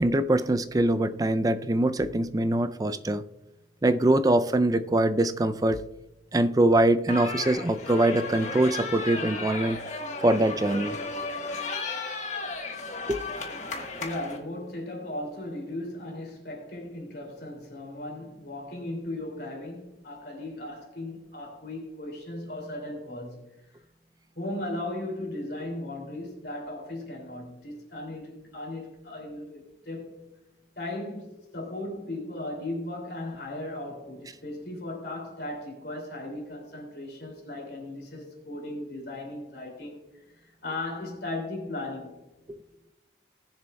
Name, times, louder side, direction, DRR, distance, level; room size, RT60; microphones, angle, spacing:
voice 1, 0.0-3.2 3.8-5.8 6.3-9.8 10.2-11.0 13.1-13.2 42.5-42.6, right 1 dB, 20° right, 0.4 m, -23 dB
sound 1, 7.1-14.4, left 3 dB, 40° left, 1.3 m, -34 dB
voice 2, 14.0-23.8 24.3-30.2 30.8-40.0 40.3-42.2, left 1 dB, 60° left, 2.6 m, -37 dB
19.0 x 6.9 x 2.2 m
head